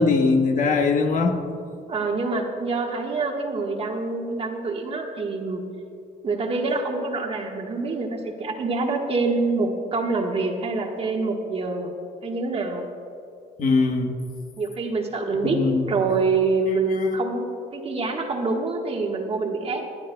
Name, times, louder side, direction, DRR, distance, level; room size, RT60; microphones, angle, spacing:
voice 1, 0.0-1.4 13.6-14.2 15.4-15.9, left 4 dB, 50° left, 4 dB, 1.1 m, -21 dB
voice 2, 1.9-5.6 6.2-11.9 12.2-12.8 14.6-15.6 15.9-17.5 17.7-19.8, right 3 dB, 35° right, 2 dB, 1.4 m, -26 dB
23.5 x 9.7 x 2.2 m, 2.7 s
cardioid pair, 110°, 17 cm